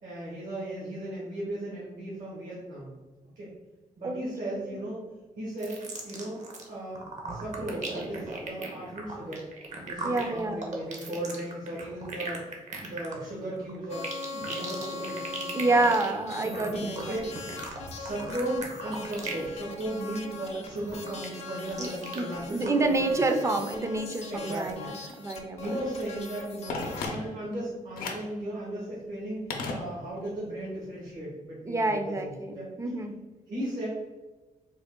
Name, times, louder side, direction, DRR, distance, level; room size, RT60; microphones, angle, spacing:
voice 1, 0.0-2.9 3.4-3.5 4.0-5.1 5.4-9.4 9.8-12.5 12.8-15.8 16.4-17.3 17.9-23.2 24.3-24.9 25.6-32.6 33.5-33.9, right 1 dB, 75° right, -6 dB, 1.2 m, -36 dB
sound 1, 5.6-6.7 6.9-19.5 19.8-20.2 20.6-22.2 22.7-22.8, right 3 dB, 55° right, 0.8 m, -38 dB
voice 2, 10.0-10.7 15.5-17.2 21.8-25.8 31.7-33.2, right 2 dB, 20° right, 6 dB, 0.4 m, -28 dB
sound 2, 13.9-27.1, left 3 dB, 45° left, 0.6 m, -41 dB
Telephone, 26.7-27.6 28.0-28.4 29.5-30.4 30.6-30.7, left 3 dB, 90° left, 0.6 m, -35 dB
3.7 x 2.2 x 3.6 m, 1.2 s
cardioid pair, 90°, 15 cm